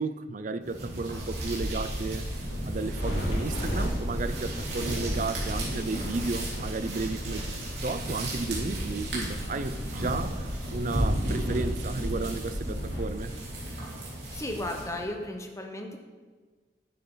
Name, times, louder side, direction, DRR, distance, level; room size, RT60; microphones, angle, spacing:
voice 1, 0.0-2.3 2.6-7.5 7.8-13.3, right 3 dB, 45° right, 12 dB, 0.5 m, -33 dB
sound 1, 0.6-15.1, right 1 dB, 70° right, 3.2 m, -34 dB
sound 2, 1.1-13.0, equal, 90° left, 3.0 m, -36 dB
voice 2, 14.3-16.0, left 1 dB, 15° left, 3 dB, 1.0 m, -35 dB
10.5 x 9.3 x 3.9 m, 1.4 s
head